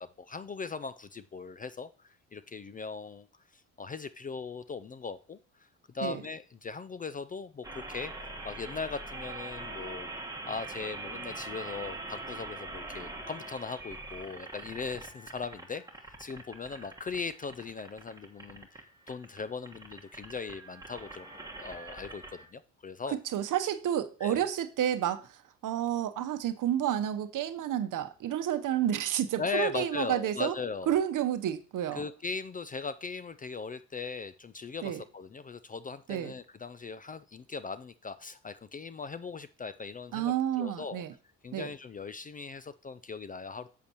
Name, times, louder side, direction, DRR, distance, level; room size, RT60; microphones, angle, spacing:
voice 1, 0.0-3.3 3.5-5.4 5.9-10.1 10.5-21.3 21.6-23.2 24.2-24.4 29.4-30.9 31.9-41.0 41.4-43.7, left 5 dB, 25° left, 0.4 m, -39 dB
sound 1, 7.6-22.5, right 2 dB, 10° right, 1.4 m, -43 dB
voice 2, 23.3-30.6 30.9-32.0 34.8-35.0 36.1-36.3 40.1-41.1 41.5-41.7, right 10 dB, 60° right, 0.9 m, -30 dB
8.1 x 6.7 x 2.9 m
supercardioid pair, 65°, 36 cm